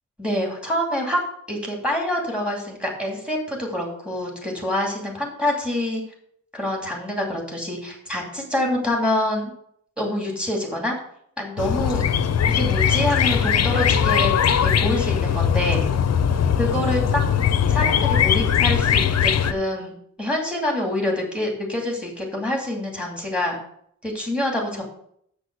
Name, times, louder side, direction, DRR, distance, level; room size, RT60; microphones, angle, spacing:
voice 1, 0.2-1.2 1.5-6.0 6.5-9.5 10.0-11.0 11.4-12.0 12.5-14.3 14.6-15.8 16.6-17.2 17.7-23.5 24.0-24.8, left 1 dB, 5° right, -1 dB, 2.6 m, -26 dB
sound 1, 11.6-19.5, left 8 dB, 55° left, 0.6 m, -20 dB
7.1 x 6.1 x 6.7 m, 0.69 s
wide cardioid pair, 155°, 31 cm